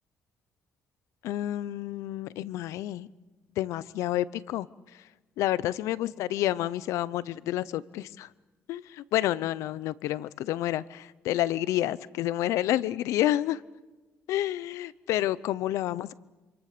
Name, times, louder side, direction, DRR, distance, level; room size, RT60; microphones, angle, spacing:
voice 1, 1.2-3.1 3.6-4.7 5.4-8.3 8.7-13.6 14.3-16.1, left 13 dB, 85° left, 19 dB, 0.7 m, -29 dB
27.0 x 26.5 x 6.8 m, 1.2 s
cardioid pair, 130°, 5 cm